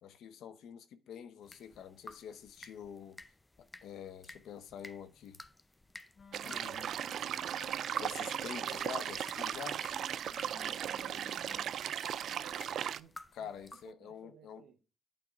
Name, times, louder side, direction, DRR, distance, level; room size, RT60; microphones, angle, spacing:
voice 1, 0.0-3.2 3.6-5.4 6.4-6.9 8.0-9.8 13.3-14.6, left 8 dB, 75° left, 0.8 m, -47 dB
sound 1, 1.4-13.9, left 1 dB, 15° left, 0.6 m, -55 dB
Wind instrument woodwind instrument, 6.2-11.8, left 5 dB, 50° left, 1.1 m, -56 dB
sound 2, 6.3-13.0, right 9 dB, 65° right, 0.3 m, -37 dB
voice 2, 10.3-13.1 13.4-14.8, right 9 dB, 90° right, 0.9 m, -58 dB
9.1 x 3.6 x 5.1 m
cardioid pair, 90°, 0 cm